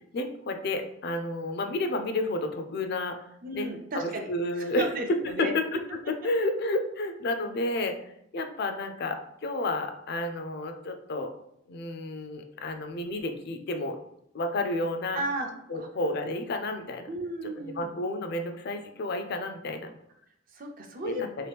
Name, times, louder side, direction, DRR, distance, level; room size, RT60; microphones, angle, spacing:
voice 1, 0.1-3.2 3.5-3.7 3.9-4.9 5.4-5.8 6.1-7.9 8.3-11.3 11.7-14.0 14.3-15.2 15.7-17.1 17.6-19.9 21.0-21.3, left 2 dB, 55° left, 6 dB, 0.4 m, -31 dB
voice 2, 3.4-5.5 15.1-15.5 15.7-15.9 17.1-18.0 20.5-21.2, right 1 dB, 45° right, 4 dB, 0.6 m, -34 dB
3.0 x 2.9 x 3.4 m, 0.75 s
head